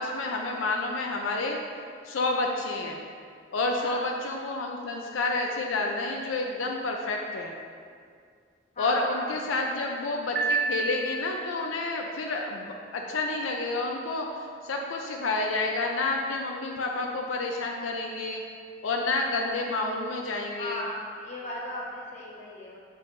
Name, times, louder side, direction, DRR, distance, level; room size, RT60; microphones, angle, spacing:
voice 1, 0.0-1.6 2.0-3.0 3.5-7.5 8.8-18.4 18.8-20.8, left 2 dB, 90° left, 1 dB, 0.5 m, -29 dB
voice 2, 3.8-4.1 8.7-10.0 20.6-22.8, left 1 dB, 40° left, -5 dB, 1.1 m, -37 dB
Piano, 10.4-11.6, right 4 dB, 50° right, 0.7 m, -29 dB
7.4 x 5.4 x 2.6 m, 2.1 s
head